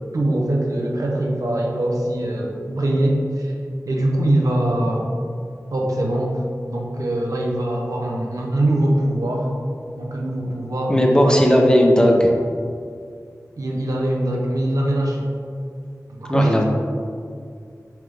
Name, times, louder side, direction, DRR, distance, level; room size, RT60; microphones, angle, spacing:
voice 1, 0.1-3.5 3.9-5.1 5.7-6.4 6.7-9.5 10.0-11.5 13.6-15.3 16.2-16.6, right 1 dB, 80° right, -1 dB, 0.9 m, -22 dB
voice 2, 10.9-12.3 16.3-16.6, equal, 15° left, 0 dB, 0.9 m, -15 dB
7.5 x 3.7 x 3.5 m, 2.2 s
wide cardioid pair, 60°, 6 cm